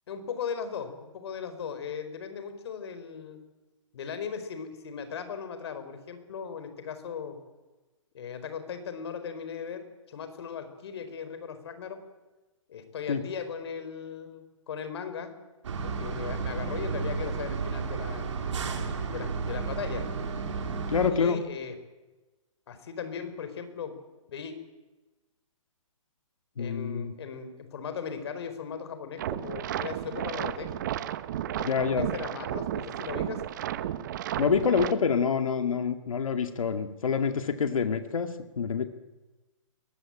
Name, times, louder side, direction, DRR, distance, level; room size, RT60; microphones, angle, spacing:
voice 1, 0.1-3.4 3.9-7.4 8.1-12.0 12.7-15.3 15.8-18.3 19.1-20.0 21.1-21.7 22.7-23.9 24.3-24.5 26.6-30.7 31.6-33.4, left 6 dB, 50° left, 9 dB, 4.5 m, -38 dB
sound 1, 15.6-21.1, right 5 dB, 65° right, 4.4 m, -32 dB
voice 2, 20.9-21.4 26.6-27.1 31.6-32.1 34.4-38.9, left 6 dB, 85° left, 7 dB, 2.2 m, -27 dB
sound 2, 29.2-34.9, right 11 dB, 35° right, 1.0 m, -33 dB
22.5 x 19.5 x 8.9 m, 1.1 s
hypercardioid pair, 165°, 17 cm